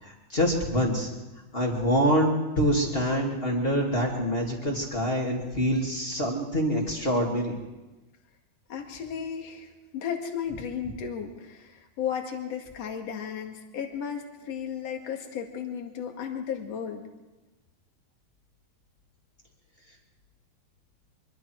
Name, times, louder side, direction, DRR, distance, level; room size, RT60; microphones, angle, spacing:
voice 1, 0.0-1.1 1.5-2.3 2.6-7.6, equal, 15° left, -1 dB, 2.3 m, -25 dB
voice 2, 8.7-17.0, left 7 dB, 50° left, 3 dB, 2.8 m, -34 dB
24.5 x 23.0 x 4.7 m, 1.1 s
omnidirectional pair, 4.4 m